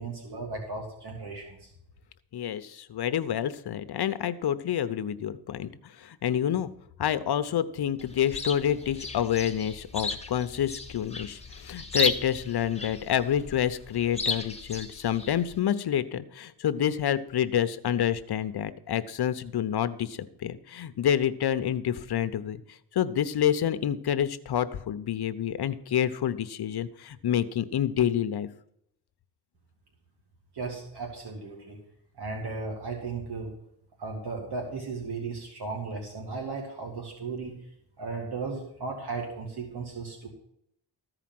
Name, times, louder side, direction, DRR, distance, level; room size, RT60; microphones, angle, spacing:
voice 1, 0.0-1.7 30.5-31.8 32.2-33.5 34.0-37.6 38.0-40.3, right 4 dB, 65° right, 0 dB, 2.2 m, -36 dB
voice 2, 2.3-5.7 6.0-6.7 7.0-22.6 22.9-28.5, left 10 dB, 60° left, 12 dB, 0.8 m, -28 dB
Chirp tweet, 8.0-15.6, left 3 dB, 15° left, 1.4 m, -35 dB
14.0 x 5.0 x 7.6 m, 0.76 s
cardioid pair, 90°, 43 cm